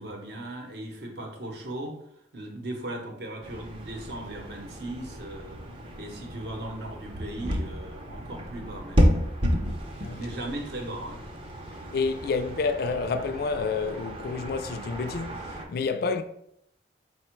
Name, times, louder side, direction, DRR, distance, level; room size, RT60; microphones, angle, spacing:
voice 1, 0.0-2.0 2.3-5.6 6.0-9.1 10.2-11.2, right 1 dB, 60° right, 0.8 m, -37 dB
sound 1, 3.4-15.7, equal, 30° right, 0.5 m, -31 dB
voice 2, 11.9-16.2, left 4 dB, 55° left, 0.3 m, -29 dB
4.3 x 2.1 x 4.4 m
head